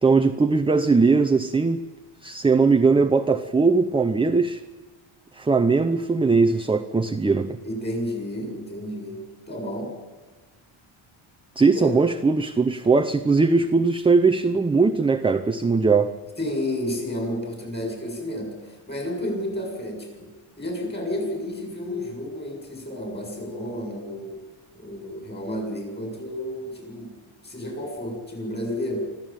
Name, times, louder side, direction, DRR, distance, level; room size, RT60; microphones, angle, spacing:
voice 1, 0.0-1.8 2.2-4.6 5.3-7.6 11.6-16.1, right 4 dB, 10° right, 7 dB, 0.6 m, -20 dB
voice 2, 7.6-9.2 9.5-9.9 11.7-12.0 12.8-12.9 16.4-20.3 20.6-24.4 24.7-29.1, left 1 dB, 20° left, 2 dB, 7.3 m, -31 dB
25.5 x 14.5 x 9.1 m, 1.3 s
cardioid pair, 160°, 49 cm